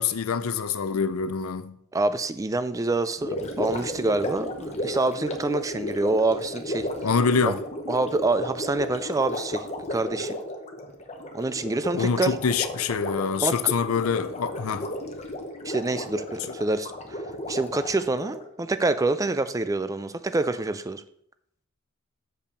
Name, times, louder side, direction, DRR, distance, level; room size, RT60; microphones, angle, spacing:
voice 1, 0.0-1.8 7.0-7.6 11.9-14.9, left 5 dB, 85° left, 0.5 m, -25 dB
voice 2, 1.9-6.9 7.9-10.4 11.3-12.4 13.4-13.7 15.6-17.2 17.5-21.0, right 2 dB, 15° right, 0.4 m, -26 dB
Gurgling, 3.2-18.5, left 1 dB, 30° left, 0.9 m, -34 dB
7.0 x 5.4 x 4.9 m
head